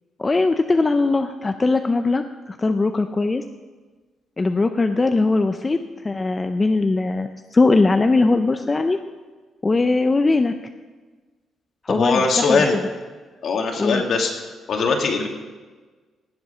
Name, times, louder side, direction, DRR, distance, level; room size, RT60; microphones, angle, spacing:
voice 1, 0.2-3.4 4.4-9.0 9.6-10.5 11.8-12.6 13.8-14.0, left 3 dB, 20° left, 7 dB, 0.5 m, -20 dB
voice 2, 11.9-12.8 13.4-14.3 14.7-15.3, left 4 dB, 55° left, 2 dB, 2.1 m, -20 dB
18.0 x 7.8 x 5.6 m, 1.4 s
cardioid pair, 140°, 0 cm